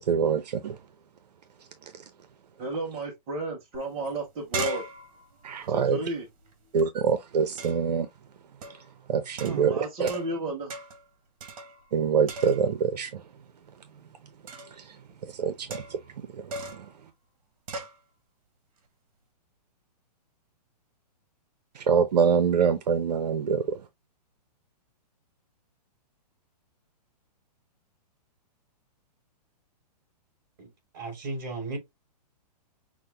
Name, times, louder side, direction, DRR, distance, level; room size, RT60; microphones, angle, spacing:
voice 1, 0.1-0.8 5.4-6.0 6.7-8.1 9.1-10.1 11.9-13.2 14.8-15.0 15.2-16.9 21.7-23.8, right 6 dB, 70° right, 0.7 m, -25 dB
voice 2, 2.6-4.8 5.7-6.3 9.4-10.7, right 2 dB, 10° right, 0.4 m, -33 dB
sound 1, 3.7-3.8 4.1-6.8 7.6-8.0 8.6-8.9 9.4-10.4 10.7-11.1 11.4-12.0 12.3-12.9 14.5-14.8 15.7-16.1 16.5-16.9 17.7-18.0, right 3 dB, 55° right, 1.4 m, -38 dB
voice 3, 30.6-31.8, right 3 dB, 35° right, 3.3 m, -35 dB
6.0 x 2.1 x 3.2 m
hypercardioid pair, 180°, 21 cm